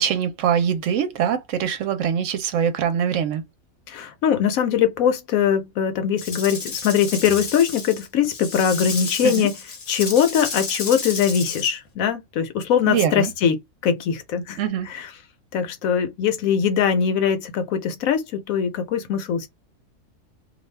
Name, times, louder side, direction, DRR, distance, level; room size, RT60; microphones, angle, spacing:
voice 1, 0.0-3.4 9.2-9.5 12.9-13.3 14.6-14.9, right 8 dB, 70° right, 0.9 m, -23 dB
voice 2, 3.9-9.5 9.9-13.6 13.8-14.6 14.9-15.1 15.5-19.5, left 8 dB, 75° left, 1.0 m, -21 dB
Rattle / Rattle (instrument), 6.2-11.7, left 4 dB, 45° left, 0.8 m, -32 dB
2.5 x 2.2 x 3.2 m
omnidirectional pair, 1.5 m